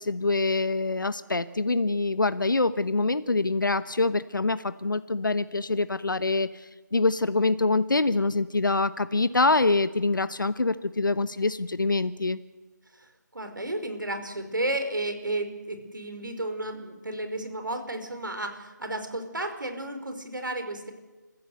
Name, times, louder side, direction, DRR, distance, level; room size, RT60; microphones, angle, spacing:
voice 1, 0.0-12.4, left 3 dB, 85° left, 13 dB, 1.2 m, -25 dB
voice 2, 12.9-20.9, right 1 dB, 85° right, 6 dB, 5.1 m, -33 dB
29.5 x 15.0 x 8.2 m, 1.2 s
figure-of-eight pair, 170°, 10 cm